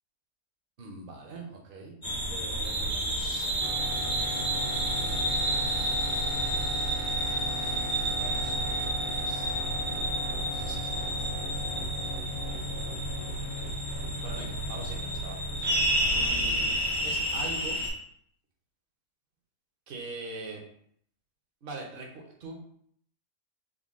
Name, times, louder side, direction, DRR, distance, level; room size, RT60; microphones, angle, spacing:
voice 1, 0.8-2.0 2.3-5.3 7.3-9.5 10.3-11.5 12.0-12.2 14.2-15.8 16.1-16.7 17.0-17.8 19.9-20.6 21.6-22.5, right 2 dB, 50° right, 1 dB, 0.8 m, -44 dB
sound 1, 2.0-17.9, right 1 dB, 65° left, 1.4 m, -30 dB
sound 2, 3.6-17.1, left 3 dB, 15° right, 0.4 m, -40 dB
Motorcycle / Idling, 4.2-14.9, right 1 dB, 75° right, 0.9 m, -44 dB
3.8 x 2.2 x 3.5 m, 0.65 s
omnidirectional pair, 1.3 m